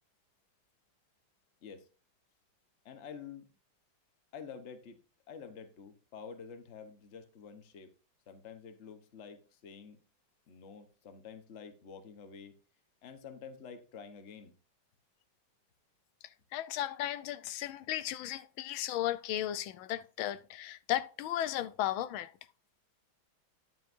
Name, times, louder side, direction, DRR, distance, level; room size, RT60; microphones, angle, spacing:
voice 1, 2.8-3.5 4.3-5.0 5.3-7.9 8.3-10.0 10.5-12.6 13.0-14.5, left 6 dB, 45° left, 1.1 m, -49 dB
voice 2, 16.5-22.3, left 13 dB, 85° left, 1.4 m, -35 dB
11.0 x 7.3 x 2.6 m
omnidirectional pair, 2.2 m